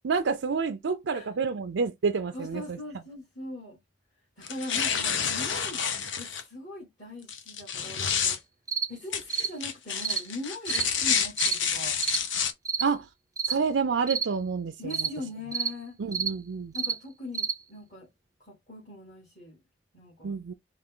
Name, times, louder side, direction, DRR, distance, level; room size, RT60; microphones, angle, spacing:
voice 1, 0.0-2.8 12.8-13.1 13.5-15.1 16.0-16.7 20.2-20.5, right 5 dB, 80° right, 0.5 m, -28 dB
voice 2, 2.3-3.8 4.4-5.8 6.2-8.4 8.9-12.0 14.8-16.0 16.7-18.1 18.5-19.6 19.9-20.4, left 1 dB, 45° left, 2.5 m, -41 dB
sound 1, 4.4-6.4 7.3-8.4 9.1-12.5, left 7 dB, 85° left, 0.8 m, -29 dB
sound 2, 8.7-8.9 9.3-9.5 10.0-10.2 10.7-10.9 11.4-11.6 12.0-12.2 12.6-12.9 13.4-13.6 14.1-14.3 14.9-15.1 15.5-15.7 16.1-16.3 16.7-17.0 17.3-17.6, right 6 dB, 20° right, 0.4 m, -29 dB
5.0 x 2.5 x 3.7 m
head